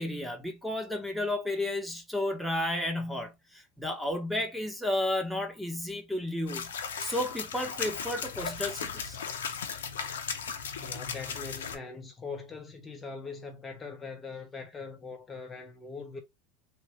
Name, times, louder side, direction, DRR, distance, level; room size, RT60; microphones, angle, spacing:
voice 1, 0.0-6.7 7.0-9.2, left 1 dB, ahead, 1.2 m, -32 dB
sound 1, 6.5-11.8, left 6 dB, 85° left, 0.7 m, -36 dB
voice 2, 10.8-16.2, left 4 dB, 25° left, 1.0 m, -41 dB
3.3 x 2.8 x 3.1 m
hypercardioid pair, 90°, 0 cm